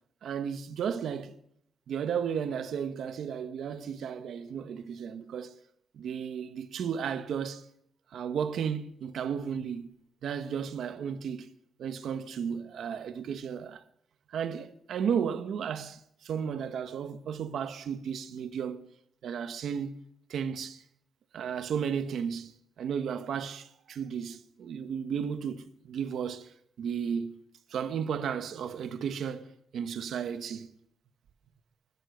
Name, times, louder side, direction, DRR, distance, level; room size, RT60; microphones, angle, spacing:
voice 1, 0.2-1.4 1.9-5.5 5.9-7.7 8.1-9.9 10.2-11.5 11.8-13.8 14.3-18.8 19.2-20.0 20.3-20.8 21.3-26.5 26.8-29.5 29.7-30.7, right 7 dB, 90° right, 1.2 m, -34 dB
13.5 x 12.5 x 6.7 m
wide cardioid pair, 145°, 0 cm